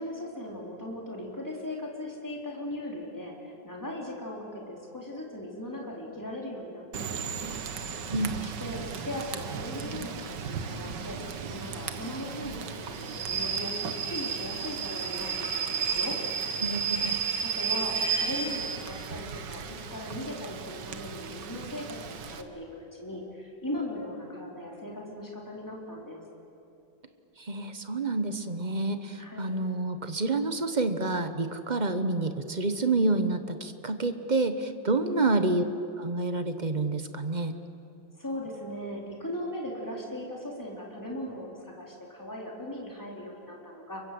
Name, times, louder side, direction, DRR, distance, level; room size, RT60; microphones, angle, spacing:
voice 1, 0.0-7.2 8.3-11.2 11.4-16.2 17.4-26.2 29.2-29.5 35.1-35.5 38.2-44.0, left 1 dB, 10° left, -2 dB, 4.3 m, -38 dB
Rain / Train, 6.9-22.4, right 6 dB, 65° right, 1.9 m, -33 dB
voice 2, 16.6-17.2 27.4-35.6 36.0-37.6, right 2 dB, 30° right, 9 dB, 1.0 m, -28 dB
29.5 x 23.5 x 7.9 m, 2.8 s
omnidirectional pair, 2.1 m